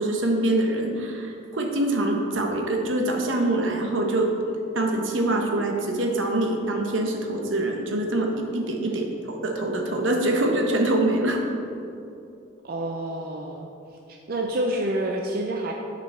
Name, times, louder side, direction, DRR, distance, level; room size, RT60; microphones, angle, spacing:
voice 1, 0.0-4.3 4.7-11.4, right 1 dB, 75° right, 2 dB, 1.1 m, -24 dB
voice 2, 12.6-13.7 14.1-15.7, right 1 dB, 50° right, 1 dB, 0.5 m, -28 dB
10.5 x 5.1 x 4.3 m, 2.7 s
head